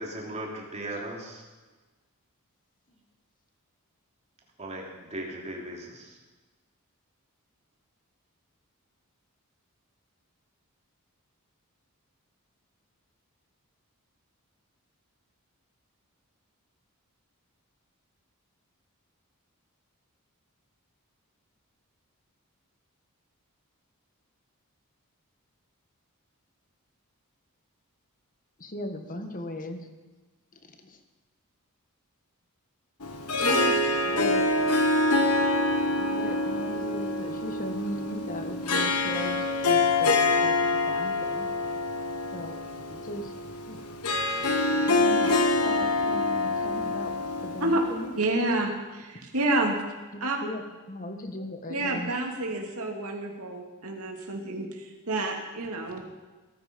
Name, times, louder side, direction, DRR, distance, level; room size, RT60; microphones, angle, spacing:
voice 1, 0.0-1.4 4.6-6.2 35.7-35.8, right 1 dB, 30° right, -1 dB, 3.4 m, -37 dB
voice 2, 28.6-29.9 30.5-31.0 33.4-34.5 35.1-35.3 35.9-41.5 42.3-42.6 42.9-43.3 43.7-43.8 44.9-48.1 48.5-48.8 50.1-50.6 50.9-52.2, left 1 dB, 35° left, 6 dB, 1.6 m, -38 dB
Harp, 33.0-48.3, left 2 dB, 90° left, 1.5 m, -26 dB
voice 3, 48.2-48.7 49.3-49.8 50.2-50.4 51.7-56.0, right 2 dB, 75° right, 1 dB, 2.5 m, -28 dB
18.5 x 13.5 x 5.3 m, 1.3 s
head